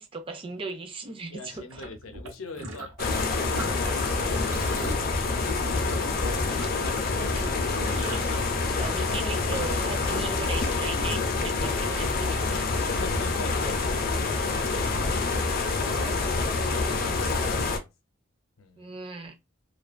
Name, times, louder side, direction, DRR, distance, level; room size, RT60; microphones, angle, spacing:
voice 1, 0.0-1.8 4.3-4.7 8.6-12.7 15.8-16.5 18.8-19.3, right 3 dB, 25° right, 0.4 m, -38 dB
voice 2, 1.3-3.8 12.9-14.2 16.6-17.9 18.6-18.9, left 3 dB, 90° left, 0.6 m, -44 dB
sound 1, 1.7-3.2 3.5-8.4, right 2 dB, 85° right, 0.7 m, -39 dB
sound 2, 3.0-17.8, left 3 dB, 45° left, 0.4 m, -27 dB
2.4 x 2.3 x 2.4 m
head